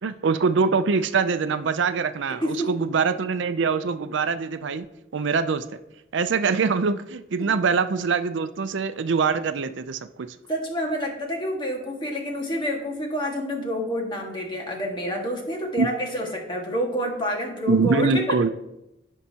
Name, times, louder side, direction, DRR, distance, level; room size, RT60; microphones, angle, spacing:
voice 1, 0.0-4.9 5.1-5.6 6.1-10.4 15.8-15.9 17.7-18.5, right 5 dB, 70° right, 11 dB, 0.5 m, -23 dB
voice 2, 2.4-2.8 7.4-7.5 10.5-18.3, equal, 25° left, 0 dB, 1.7 m, -28 dB
16.5 x 5.6 x 2.9 m, 0.89 s
head